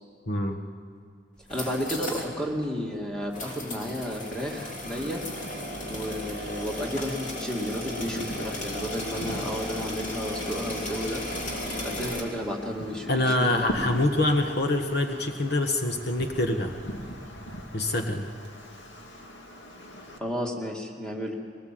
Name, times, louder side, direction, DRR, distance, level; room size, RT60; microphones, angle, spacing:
voice 1, 0.3-0.6 13.1-16.7 17.7-18.3, left 1 dB, 60° left, 4 dB, 1.4 m, -25 dB
sound 1, 1.4-2.3 2.6-2.7 3.3-12.2, left 1 dB, 45° left, 3.3 m, -35 dB
voice 2, 1.5-5.2 5.9-11.2 11.8-13.7 20.2-21.4, equal, 5° left, 0 dB, 2.3 m, -32 dB
Wind, 7.9-20.2, equal, 80° left, 2.3 m, -41 dB
22.0 x 19.0 x 7.7 m, 2.2 s
head